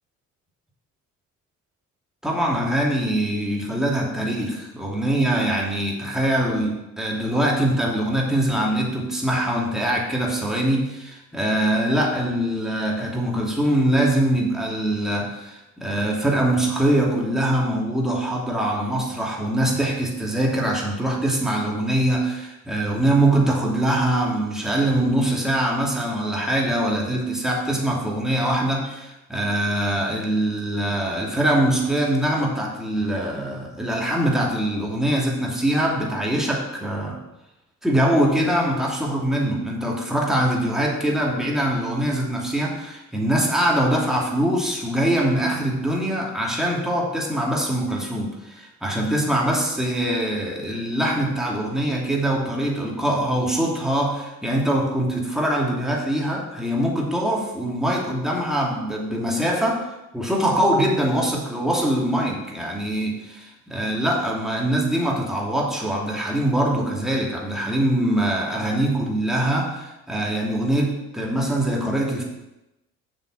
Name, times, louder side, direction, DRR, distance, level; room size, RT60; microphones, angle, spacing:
voice 1, 2.2-37.2 37.8-72.2, right 1 dB, ahead, -2 dB, 2.7 m, -23 dB
7.0 x 6.7 x 6.1 m, 0.95 s
figure-of-eight pair, 45°, 43 cm